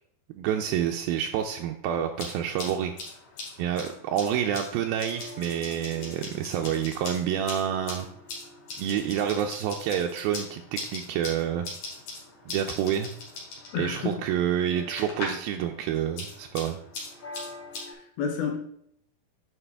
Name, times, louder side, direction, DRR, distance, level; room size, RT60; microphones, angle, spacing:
voice 1, 0.4-2.9 3.6-8.1 8.8-11.7 12.5-13.1 13.8-16.8, right 9 dB, 85° right, 3 dB, 2.3 m, -28 dB
sound 1, 2.1-15.5 15.8-17.8, left 2 dB, 55° left, 3.7 m, -41 dB
sound 2, 5.0-17.9, left 1 dB, 35° left, 3.8 m, -49 dB
voice 2, 13.7-14.3 17.9-18.6, left 6 dB, 75° left, 3 dB, 2.8 m, -30 dB
9.8 x 4.9 x 3.4 m, 0.68 s
omnidirectional pair, 4.3 m